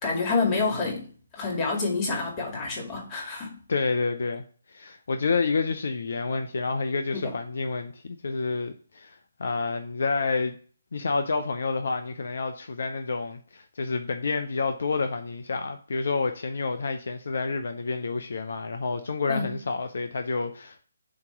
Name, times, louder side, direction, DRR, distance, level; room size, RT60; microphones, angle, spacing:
voice 1, 0.0-1.1 1.3-3.6 7.1-7.3 19.3-19.6, left 4 dB, 25° left, 2.2 m, -28 dB
voice 2, 3.7-10.6 10.9-20.8, left 4 dB, 65° left, 0.6 m, -29 dB
7.4 x 3.0 x 5.8 m
figure-of-eight pair, 145°, 0 cm